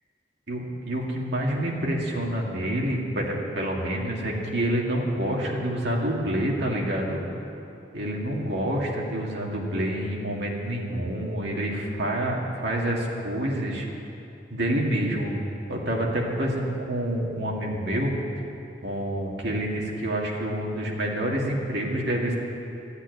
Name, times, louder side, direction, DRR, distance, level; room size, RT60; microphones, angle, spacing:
voice 1, 0.5-7.2 7.9-13.9 14.5-15.3 15.7-18.1 18.8-22.4, right 1 dB, 65° right, -2 dB, 2.1 m, -27 dB
13.0 x 8.2 x 9.4 m, 2.7 s
head